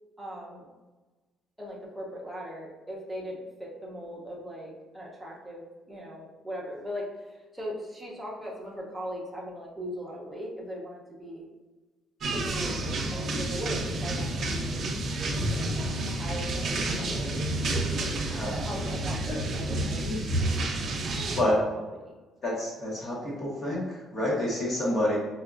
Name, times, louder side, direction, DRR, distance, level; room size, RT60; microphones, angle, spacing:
voice 1, 0.2-0.6 1.6-7.1 7.5-11.5 12.3-14.7 15.5-15.6 16.1-17.3 17.7-20.0, equal, 5° right, -4 dB, 0.6 m, -39 dB
sound 1, 12.2-21.4, right 1 dB, 45° right, 0.5 m, -30 dB
voice 2, 18.2-18.6 19.2-19.4 19.9-20.4 21.4-21.6 22.4-25.2, left 1 dB, 35° left, -5 dB, 1.0 m, -29 dB
4.4 x 2.3 x 2.4 m, 1.2 s
cardioid pair, 160°, 0 cm